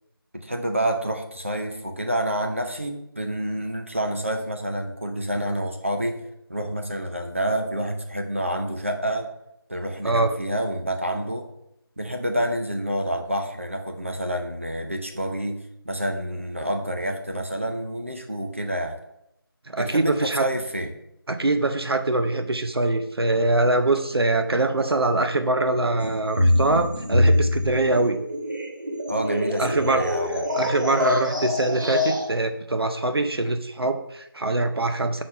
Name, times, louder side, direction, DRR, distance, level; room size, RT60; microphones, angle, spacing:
voice 1, 0.3-6.2 6.5-9.3 9.7-11.5 12.0-19.0 19.8-20.9 29.1-30.4, right 1 dB, 35° right, 3 dB, 0.6 m, -28 dB
voice 2, 19.7-20.5 21.3-28.2 29.6-30.0 30.5-35.2, right 2 dB, 90° right, 7 dB, 0.8 m, -23 dB
sound 1, 26.0-32.3, left 1 dB, 55° right, 1.3 m, -24 dB
6.0 x 4.2 x 4.9 m, 0.81 s
figure-of-eight pair, 175°, 13 cm